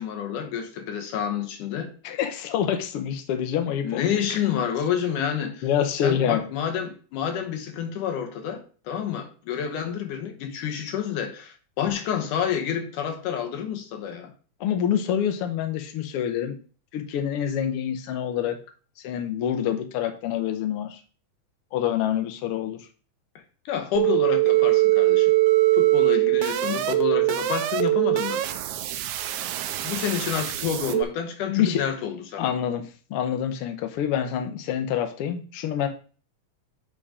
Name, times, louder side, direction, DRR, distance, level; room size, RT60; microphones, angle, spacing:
voice 1, 0.0-1.9 3.8-5.7 6.0-14.3 23.7-25.3 25.7-28.4 29.8-32.5, left 8 dB, 85° left, 2.6 m, -29 dB
voice 2, 2.0-4.6 5.6-6.4 14.6-16.6 16.9-18.6 19.0-21.0 21.7-22.8 31.5-31.8 32.4-35.9, left 9 dB, 65° left, 1.5 m, -26 dB
sound 1, 24.0-31.0, right 17 dB, 80° right, 2.0 m, -22 dB
8.4 x 3.9 x 4.9 m
omnidirectional pair, 3.5 m